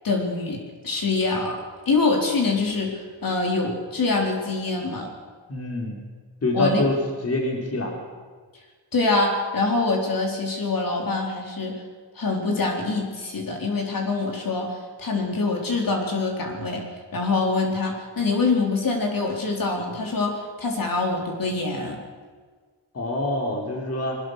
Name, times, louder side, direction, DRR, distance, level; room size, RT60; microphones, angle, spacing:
voice 1, 0.0-1.6 1.9-5.1 6.5-6.8 8.9-11.8 12.2-16.8 17.1-22.0, left 3 dB, 50° left, 1 dB, 3.9 m, -25 dB
voice 2, 5.5-6.0 6.4-7.0 7.2-7.9 22.9-24.2, left 2 dB, 35° left, 0 dB, 3.7 m, -26 dB
22.5 x 19.5 x 6.5 m, 1.5 s
wide cardioid pair, 120°, 42 cm